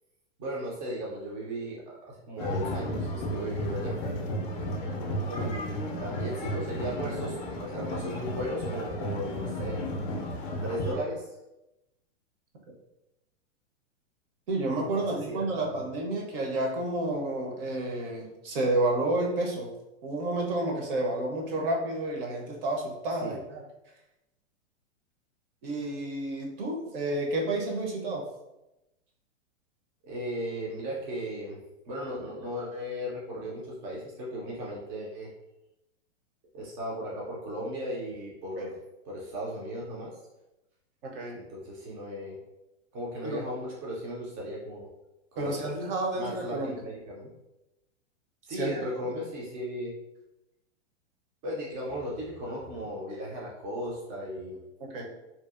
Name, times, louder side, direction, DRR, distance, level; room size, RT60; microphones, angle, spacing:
voice 1, 0.4-4.0 5.3-9.8 10.6-11.3 14.8-15.8 23.2-23.4 30.0-31.6 31.8-35.3 36.5-38.7 39.0-40.1 41.3-42.4 42.9-44.9 45.3-45.5 46.1-47.3 48.4-49.9 51.4-54.6, equal, 25° right, -5 dB, 0.4 m, -36 dB
sound 1, 2.4-10.9, equal, 35° left, 0.4 m, -33 dB
voice 2, 14.5-19.7 20.0-23.6 25.6-28.3 38.6-38.7 41.0-41.4 43.2-43.4 45.4-46.7 48.5-49.2 54.9-55.1, right 2 dB, 50° right, 0 dB, 0.7 m, -30 dB
2.7 x 2.3 x 2.4 m, 0.94 s
hypercardioid pair, 140°, 36 cm